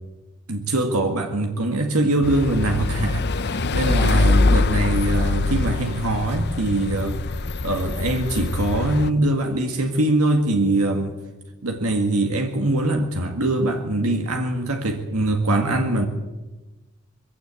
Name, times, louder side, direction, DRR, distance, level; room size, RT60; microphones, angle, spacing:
voice 1, 0.5-3.2 3.7-7.2 7.6-11.1 11.6-16.1, right 1 dB, 75° right, 4 dB, 2.0 m, -22 dB
sound 1, 2.2-9.1, left 3 dB, 50° left, 0.7 m, -23 dB
22.5 x 16.5 x 8.5 m, 1.2 s
head